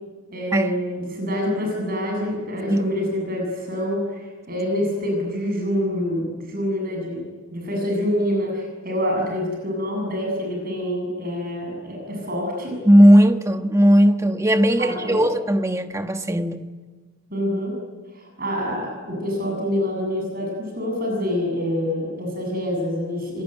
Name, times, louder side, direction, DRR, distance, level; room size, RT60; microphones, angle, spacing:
voice 1, 0.3-7.2 7.5-12.8 14.8-15.2 17.3-17.7 18.1-23.4, equal, 40° right, 7.9 m, -26 dB
voice 2, 12.8-16.7, equal, 15° right, 1.2 m, -17 dB
28.0 x 20.5 x 9.2 m
head